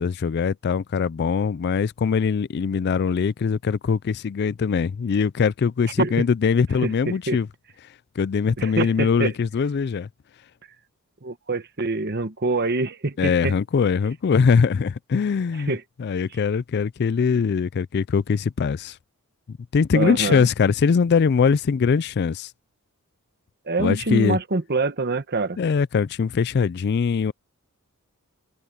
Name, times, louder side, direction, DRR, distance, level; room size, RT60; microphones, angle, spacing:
voice 1, 0.0-7.5 8.2-10.1 13.2-15.7 16.0-19.0 19.5-22.5 23.8-24.4 25.6-27.3, left 6 dB, 50° left, 0.3 m, -22 dB
voice 2, 6.8-7.4 8.6-9.3 11.2-13.5 15.7-15.8 19.9-20.5 23.7-25.6, right 3 dB, 45° right, 1.1 m, -25 dB
head